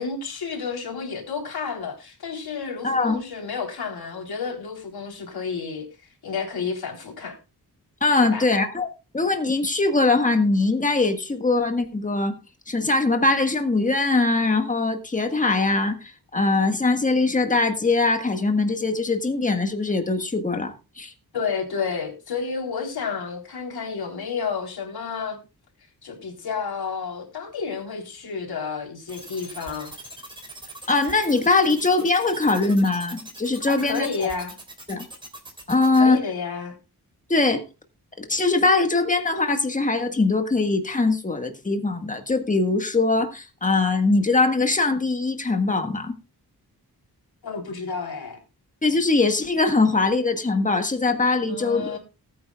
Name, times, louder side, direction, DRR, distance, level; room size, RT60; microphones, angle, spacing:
voice 1, 0.0-5.9 6.2-7.4 8.2-8.5 21.3-25.4 26.0-29.9 33.7-34.5 36.0-36.7 47.4-48.4 51.5-52.0, left 5 dB, 75° left, 3.7 m, -31 dB
voice 2, 2.8-3.2 8.0-12.3 12.7-21.1 30.9-34.1 34.9-35.0 35.7-36.2 37.3-37.6 38.2-46.1 48.8-52.0, left 3 dB, 20° left, 1.6 m, -22 dB
sound 1, 29.1-36.0, right 1 dB, 15° right, 3.3 m, -41 dB
19.5 x 9.2 x 2.4 m
wide cardioid pair, 135°, 38 cm